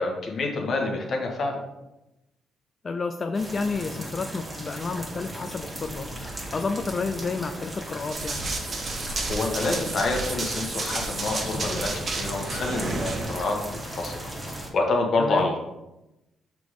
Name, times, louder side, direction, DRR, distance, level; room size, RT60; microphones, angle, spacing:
voice 1, 0.0-1.6 9.2-15.6, left 3 dB, 55° left, 1 dB, 1.4 m, -27 dB
voice 2, 2.8-8.4 15.2-15.5, left 4 dB, 35° left, 7 dB, 0.4 m, -30 dB
sound 1, 3.3-14.7, right 1 dB, 15° right, 1.7 m, -37 dB
Run, 8.1-13.4, right 3 dB, 40° right, 1.1 m, -31 dB
5.9 x 3.6 x 4.9 m, 0.95 s
cardioid pair, 90°, 0 cm